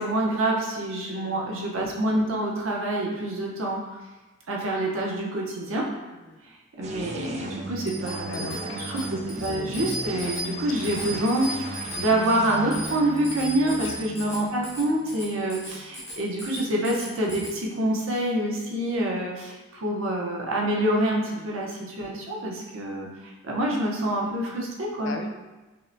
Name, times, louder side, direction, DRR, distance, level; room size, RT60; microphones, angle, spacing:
voice 1, 0.0-3.8 4.5-5.9 6.8-9.1 9.4-25.1, right 1 dB, 85° right, -2 dB, 0.7 m, -27 dB
voice 2, 1.0-1.4 6.1-6.4 8.3-9.0 10.2-10.8 13.6-14.0 21.3-21.5 25.0-25.3, left 3 dB, 70° left, 5 dB, 0.4 m, -40 dB
sound 1, 6.8-16.3, right 1 dB, 35° right, 0.3 m, -37 dB
Bicycle bell, 7.8-17.5, equal, 10° left, 0.8 m, -37 dB
5.6 x 2.1 x 2.6 m, 1.1 s
head